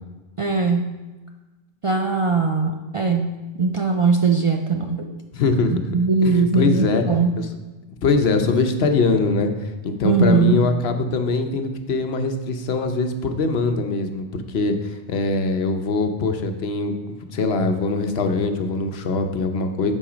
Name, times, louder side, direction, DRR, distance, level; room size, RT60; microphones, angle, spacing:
voice 1, 0.4-1.0 1.8-5.2 5.9-7.3 10.0-10.6, right 4 dB, 50° right, 3 dB, 0.4 m, -20 dB
voice 2, 5.3-5.7 6.2-7.0 7.4-7.5 8.0-9.5 9.8-16.9 17.3-19.9, left 3 dB, 75° left, 6 dB, 1.0 m, -22 dB
8.6 x 4.7 x 5.0 m, 1.2 s
omnidirectional pair, 1.1 m